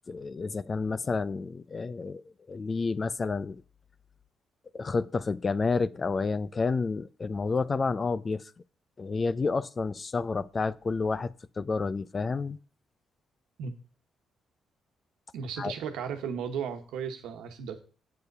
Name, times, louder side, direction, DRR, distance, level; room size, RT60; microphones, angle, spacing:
voice 1, 0.1-2.2 2.5-3.6 4.7-8.4 9.0-12.6 15.6-15.7, left 4 dB, 35° left, 0.5 m, -30 dB
voice 2, 15.3-17.8, right 7 dB, 90° right, 1.3 m, -35 dB
8.3 x 6.9 x 5.4 m
cardioid pair, 90°, 0 cm